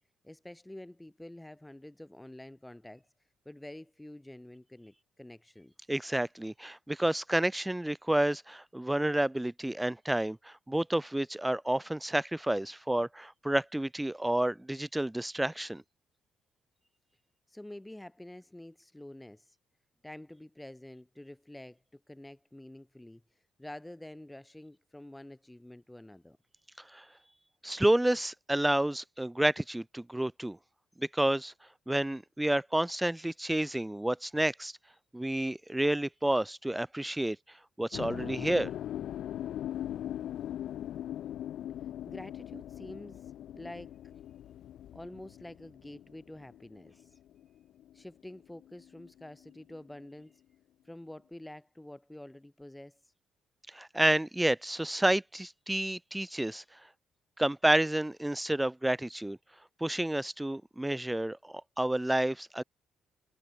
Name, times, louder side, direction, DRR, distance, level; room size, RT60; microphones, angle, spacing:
voice 1, 0.2-3.1 3.4-5.7 17.5-19.6 20.0-23.2 23.6-26.4 42.1-44.1 44.9-47.2 47.9-50.3 50.8-53.1, left 1 dB, 10° left, 7.9 m, -48 dB
voice 2, 5.9-15.8 26.9-27.0 27.6-30.6 31.0-31.5 31.9-34.7 35.1-37.4 37.8-38.7 53.7-56.6 57.4-59.4 59.8-62.6, right 1 dB, 10° right, 1.3 m, -30 dB
sound 1, 37.9-48.0 48.3-50.0, left 11 dB, 75° left, 1.0 m, -40 dB
cardioid pair, 90°, 0 cm